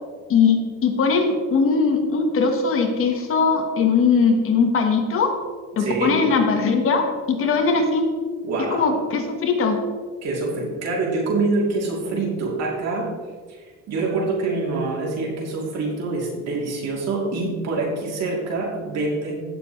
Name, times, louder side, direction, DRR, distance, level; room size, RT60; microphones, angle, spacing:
voice 1, 0.3-5.4 5.8-8.1 8.7-9.8, left 5 dB, 40° left, 5 dB, 1.3 m, -20 dB
voice 2, 5.8-6.2 8.4-8.9 10.2-13.1 13.5-19.3, right 3 dB, 55° right, -2 dB, 3.0 m, -25 dB
16.0 x 6.9 x 3.1 m, 1.5 s
cardioid pair, 140°, 32 cm